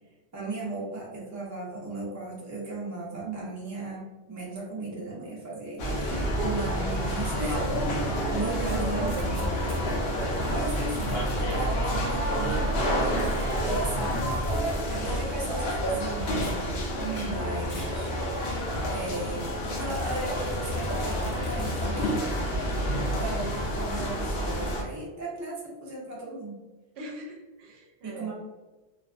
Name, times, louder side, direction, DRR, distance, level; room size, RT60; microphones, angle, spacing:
voice 1, 0.3-4.0 4.3-9.5 10.5-12.6 13.0-14.2 14.8-16.4 17.2-18.1 18.9-26.6 28.0-28.3, right 2 dB, 25° right, -4 dB, 0.4 m, -36 dB
sound 1, 5.8-24.8, equal, 65° left, 0.8 m, -29 dB
sound 2, 6.1-11.3, left 1 dB, 90° left, 1.0 m, -41 dB
voice 2, 6.1-6.6 8.4-9.7 17.0-17.4 27.0-28.3, right 3 dB, 70° right, 0 dB, 0.8 m, -36 dB
sound 3, 8.6-9.9 10.7-11.6 13.1-14.9 16.3-16.7 17.6-18.0 18.5-18.6 19.9-22.3, left 2 dB, 35° left, 0.6 m, -38 dB
2.4 x 2.1 x 2.4 m, 1.1 s
omnidirectional pair, 1.1 m